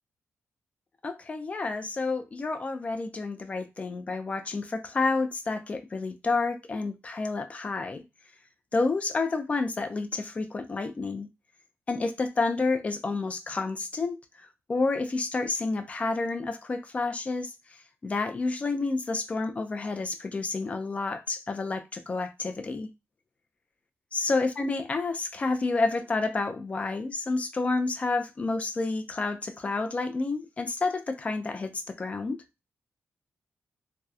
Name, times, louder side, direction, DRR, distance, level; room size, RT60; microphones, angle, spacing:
voice 1, 1.0-8.0 8.7-11.3 11.9-22.9 24.1-32.4, left 3 dB, 25° left, 0.3 m, -30 dB
2.7 x 2.0 x 2.3 m
wide cardioid pair, 140°, 5 cm